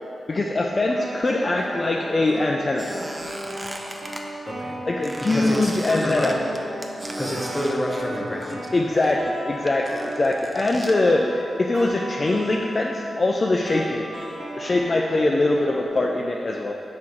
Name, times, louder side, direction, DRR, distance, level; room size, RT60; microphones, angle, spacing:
voice 1, 0.3-2.9 4.8-6.3 8.7-14.1 14.6-16.8, left 2 dB, 45° left, 0 dB, 0.4 m, -22 dB
sound 1, 0.8-15.9, right 1 dB, 85° right, 1.5 m, -36 dB
Squeak, 2.8-4.2 5.0-8.7 9.0-11.0, right 1 dB, 25° right, 0.5 m, -37 dB
voice 2, 4.5-4.8 5.2-6.4 7.2-8.7, equal, 20° left, -1 dB, 0.8 m, -28 dB
6.1 x 4.3 x 3.7 m, 2.7 s
cardioid pair, 65°, 0 cm